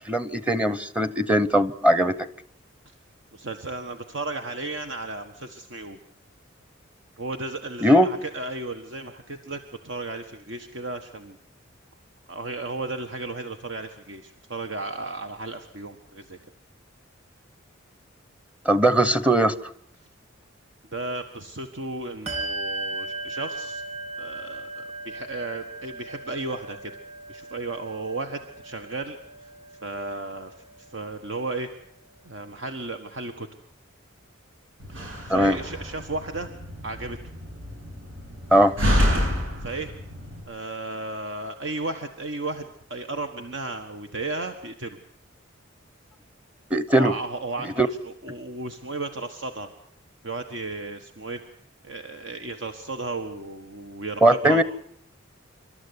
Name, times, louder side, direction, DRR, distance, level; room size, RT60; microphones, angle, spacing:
voice 1, 0.1-2.1 7.8-8.1 18.6-19.7 35.3-35.6 38.5-38.7 46.7-47.1 47.6-47.9 54.2-54.6, right 1 dB, 5° right, 13 dB, 1.0 m, -19 dB
voice 2, 3.3-6.0 7.2-11.4 12.3-16.4 20.9-23.8 24.2-26.9 27.3-29.2 29.8-31.7 32.2-33.5 35.0-36.5 36.8-37.2 39.6-39.9 40.4-45.0 46.9-49.7 50.2-51.4 51.8-54.6, right 2 dB, 65° right, 6 dB, 1.5 m, -34 dB
Bell, 22.3-32.2, right 2 dB, 35° right, 3.8 m, -38 dB
Slam, 34.8-40.4, equal, 90° right, 7.8 m, -28 dB
27.5 x 13.0 x 9.8 m, 0.68 s
head